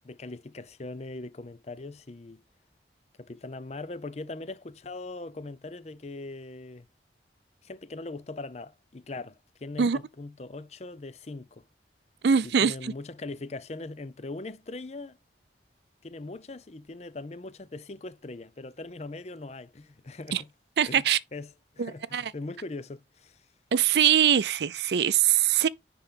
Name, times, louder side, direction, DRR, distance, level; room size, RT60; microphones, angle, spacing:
voice 1, 0.0-2.4 3.2-6.9 7.6-11.6 12.6-15.2 16.0-20.5 20.9-21.0 21.3-23.4, left 2 dB, 35° left, 0.6 m, -40 dB
voice 2, 12.2-12.9 20.3-20.4 20.8-21.2 21.8-22.2 23.7-25.7, right 8 dB, 70° right, 0.4 m, -23 dB
10.0 x 3.8 x 3.7 m
head